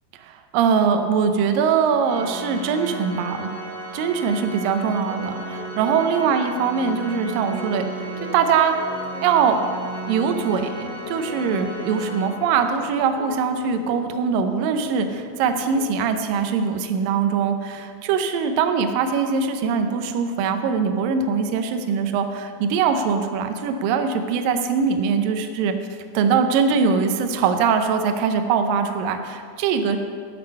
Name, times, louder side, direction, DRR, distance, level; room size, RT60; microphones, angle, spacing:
voice 1, 0.2-3.5 3.9-8.1 8.3-8.8 9.2-9.6 10.1-25.7 26.1-30.0, right 6 dB, 80° right, 6 dB, 2.0 m, -22 dB
Organ, 2.0-12.8, right 2 dB, 40° left, 2.1 m, -34 dB
sound 1, 4.9-16.3, left 3 dB, 85° left, 3.4 m, -41 dB
13.0 x 7.4 x 5.4 m, 2.1 s
omnidirectional pair, 4.9 m